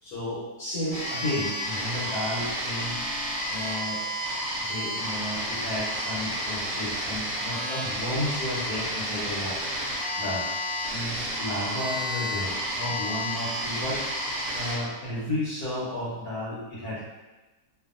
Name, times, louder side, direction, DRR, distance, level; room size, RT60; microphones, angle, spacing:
voice 1, 0.0-3.0 3.5-4.1 4.7-9.6 10.2-10.5 10.9-14.1 14.5-17.0, left 1 dB, 65° left, -9 dB, 1.3 m, -32 dB
sound 1, 0.9-14.8, equal, 55° right, 1.0 m, -31 dB
2.6 x 2.6 x 2.5 m, 1.1 s
omnidirectional pair, 1.9 m